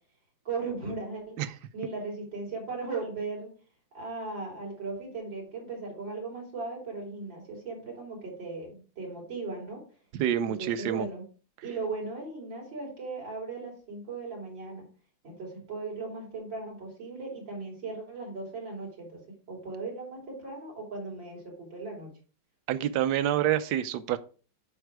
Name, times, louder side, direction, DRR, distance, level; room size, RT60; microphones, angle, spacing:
voice 1, 0.5-1.5 1.7-3.6 3.9-9.8 10.4-11.2 11.6-14.9 15.2-22.2, right 3 dB, 90° right, 4.2 m, -37 dB
voice 2, 10.1-11.0 22.7-24.2, right 11 dB, 70° right, 1.2 m, -27 dB
9.2 x 4.5 x 4.8 m
omnidirectional pair, 2.0 m